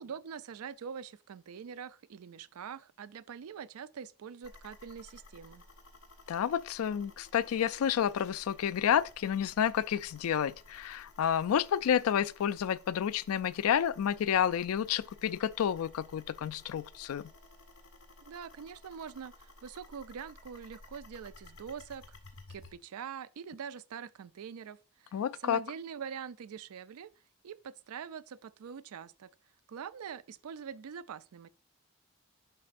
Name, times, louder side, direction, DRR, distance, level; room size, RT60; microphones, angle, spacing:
voice 1, 0.0-5.6 18.3-22.2 22.5-27.1 27.4-29.3 29.7-31.5, right 7 dB, 85° right, 0.4 m, -44 dB
sound 1, 4.4-22.7, left 2 dB, 60° left, 1.8 m, -56 dB
voice 2, 6.3-17.3 25.1-25.6, left 9 dB, 80° left, 0.3 m, -30 dB
11.0 x 4.3 x 2.5 m
head